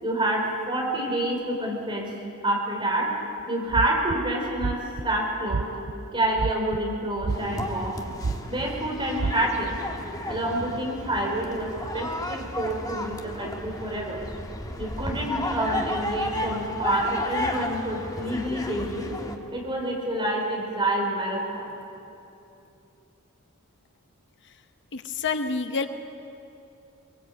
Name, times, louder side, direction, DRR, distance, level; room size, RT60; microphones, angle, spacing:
voice 1, 0.0-2.1 2.4-3.1 3.5-5.7 6.1-8.0 8.5-9.8 10.3-14.2 14.8-19.1 19.5-21.7, right 1 dB, 25° right, -1 dB, 4.6 m, -28 dB
sound 1, 3.7-4.2 4.6-5.0 5.5-5.9 6.4-6.8 7.2-7.9 8.2-8.6 9.2-9.3, right 4 dB, 55° right, 0.6 m, -27 dB
sound 2, 7.3-19.4, left 1 dB, 15° left, 1.5 m, -33 dB
voice 2, 24.9-25.9, left 4 dB, 55° left, 8 dB, 0.9 m, -28 dB
23.0 x 21.5 x 8.4 m, 2.8 s
head